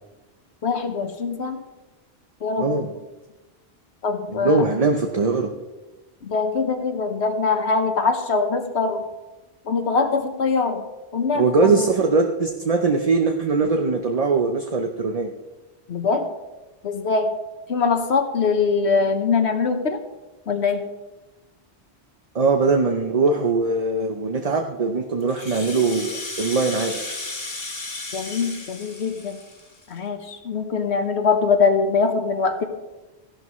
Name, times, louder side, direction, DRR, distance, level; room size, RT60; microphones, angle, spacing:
voice 1, 0.6-1.6 2.4-2.9 4.0-4.7 6.2-9.0 9.6-10.8 11.1-11.9 15.9-16.3 16.8-17.3 17.7-20.0 20.5-20.9 28.1-29.4 29.9-32.6, left 4 dB, 85° left, 7 dB, 1.4 m, -22 dB
voice 2, 4.3-5.5 11.3-15.3 22.3-27.0, right 4 dB, 40° right, 4 dB, 0.8 m, -21 dB
Rattle (instrument), 25.2-30.0, left 2 dB, 65° left, 2.1 m, -34 dB
15.0 x 11.5 x 3.1 m, 1.1 s
omnidirectional pair, 1.1 m